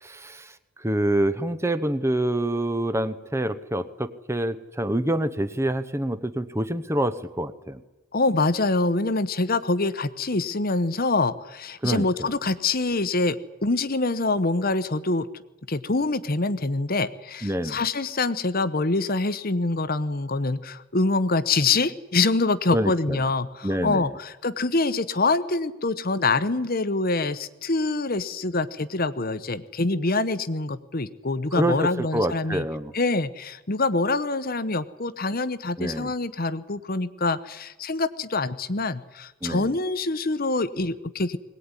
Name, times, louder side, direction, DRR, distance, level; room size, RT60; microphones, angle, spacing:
voice 1, 0.0-7.8 11.8-12.1 17.4-17.8 22.7-23.2 23.6-24.1 31.5-32.9 35.8-36.1 39.4-39.7, right 1 dB, 10° right, 12 dB, 0.9 m, -26 dB
voice 2, 8.1-15.3 15.7-32.6 32.9-41.4, left 3 dB, 40° left, 14 dB, 1.0 m, -25 dB
21.5 x 18.5 x 9.9 m, 1.1 s
head